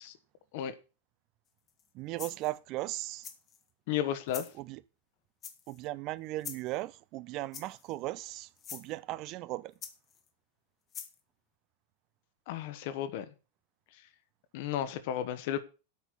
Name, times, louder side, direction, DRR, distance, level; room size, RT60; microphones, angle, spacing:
sound 1, 1.7-1.9 2.2-2.6 3.2-3.6 4.3-4.5 5.4-5.8 6.4-6.7 7.5-7.9 8.6-8.9 9.8-10.3 10.9-11.2, left 8 dB, 30° left, 1.4 m, -44 dB
voice 1, 1.9-3.3 4.5-4.8 5.7-9.7, right 17 dB, 40° right, 0.5 m, -37 dB
voice 2, 3.9-4.5 12.5-13.2 14.5-15.6, left 10 dB, 50° left, 1.3 m, -33 dB
8.7 x 6.0 x 8.3 m
figure-of-eight pair, 90°, 0 cm